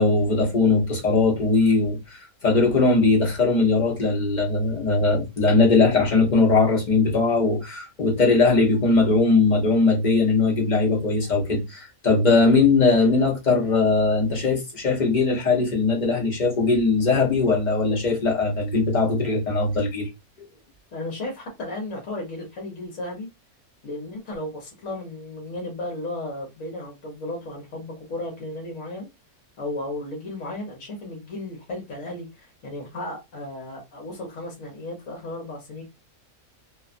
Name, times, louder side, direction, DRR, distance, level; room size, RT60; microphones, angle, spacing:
voice 1, 0.0-20.1, left 3 dB, 45° left, 0.6 m, -20 dB
voice 2, 20.9-23.3 23.8-29.1 29.6-35.8, left 1 dB, 65° left, 1.2 m, -34 dB
2.8 x 2.3 x 2.4 m
omnidirectional pair, 1.6 m